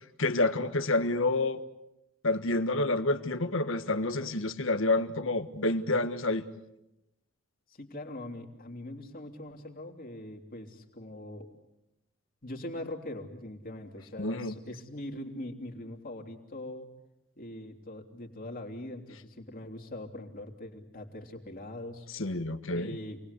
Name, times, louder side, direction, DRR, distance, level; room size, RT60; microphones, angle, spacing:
voice 1, 0.2-1.6 2.2-6.4 14.2-14.5 22.1-23.0, left 2 dB, 70° left, 10 dB, 1.5 m, -28 dB
voice 2, 7.7-11.5 12.4-16.9 17.4-22.1 22.7-23.2, left 1 dB, 45° left, 3 dB, 3.2 m, -42 dB
28.0 x 20.0 x 8.4 m, 0.91 s
head